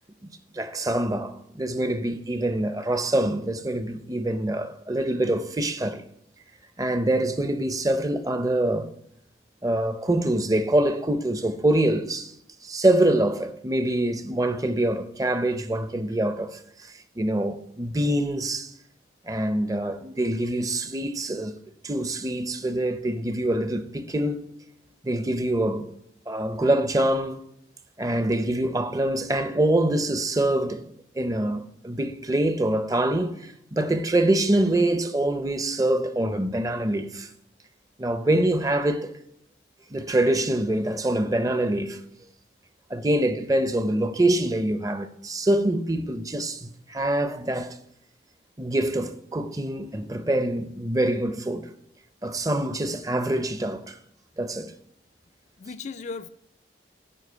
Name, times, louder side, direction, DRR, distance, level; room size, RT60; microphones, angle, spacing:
voice 1, 0.2-6.0 6.8-8.9 9.6-12.3 12.6-18.7 19.3-21.5 21.8-24.4 25.0-25.9 26.3-27.4 28.0-37.3 38.0-39.1 39.9-42.0 42.9-47.8 48.6-51.7 52.2-54.0 54.4-54.7, right 1 dB, 20° right, 0.6 m, -25 dB
voice 2, 55.6-56.3, left 4 dB, 40° left, 0.4 m, -36 dB
9.9 x 5.0 x 8.0 m
head